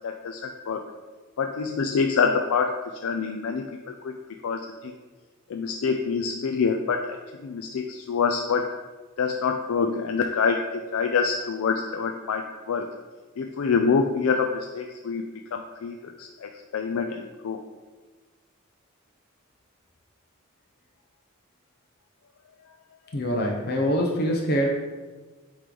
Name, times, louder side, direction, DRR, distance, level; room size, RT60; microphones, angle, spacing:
voice 1, 0.0-0.8 1.4-2.8 3.0-4.1 4.4-4.9 5.5-7.1 7.4-8.7 9.2-12.9 13.4-15.2 15.5-17.6, left 5 dB, 85° left, 4 dB, 0.4 m, -26 dB
voice 2, 23.1-24.7, equal, 50° left, 0 dB, 0.7 m, -24 dB
8.0 x 3.1 x 3.8 m, 1.3 s
head